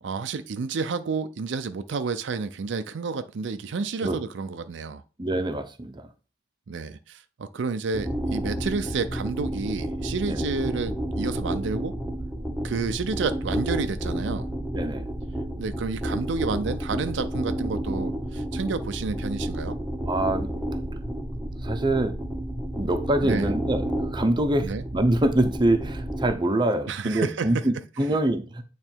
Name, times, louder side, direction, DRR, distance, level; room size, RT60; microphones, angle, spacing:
voice 1, 0.0-5.0 6.7-11.9 12.6-14.5 15.6-19.8 23.2-23.5 24.6-24.8 26.9-27.5, right 4 dB, 70° right, 0.4 m, -30 dB
voice 2, 5.2-6.1 10.3-10.4 14.7-15.1 20.1-20.5 21.6-22.2 22.8-28.6, right 1 dB, 25° right, 0.7 m, -25 dB
sound 1, 7.9-26.3, right 1 dB, 5° right, 1.0 m, -31 dB
8.7 x 3.2 x 4.5 m
head